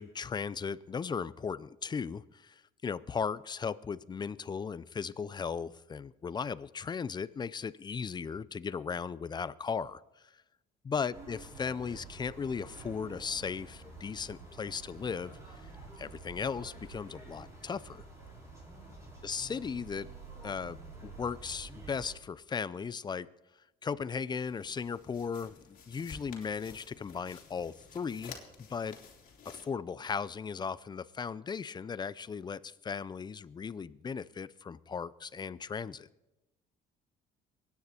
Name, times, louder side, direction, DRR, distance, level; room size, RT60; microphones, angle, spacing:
voice 1, 0.0-2.5 2.8-10.0 10.8-15.3 16.0-18.0 19.2-20.1 20.4-23.3 23.8-28.4 28.7-29.0 29.5-36.1, left 6 dB, 25° left, 17 dB, 0.5 m, -37 dB
sound 1, 11.1-22.2, right 3 dB, 15° right, 5.2 m, -49 dB
sound 2, 24.4-29.6, left 6 dB, 55° left, 3.0 m, -52 dB
23.5 x 9.7 x 4.3 m, 0.97 s
cardioid pair, 110°, 17 cm